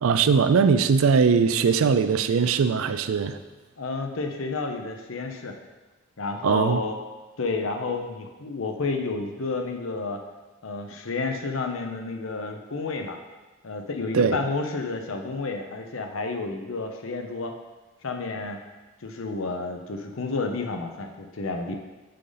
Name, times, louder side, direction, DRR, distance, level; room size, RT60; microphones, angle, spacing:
voice 1, 0.0-3.4 6.4-6.8 14.1-14.4, right 5 dB, 85° right, 11 dB, 0.4 m, -20 dB
voice 2, 3.8-5.6 6.2-7.0 7.4-10.2 10.6-13.2 13.6-17.5 18.0-18.6 19.0-21.7, left 3 dB, 75° left, 4 dB, 0.7 m, -30 dB
6.6 x 5.4 x 3.9 m, 1.2 s
head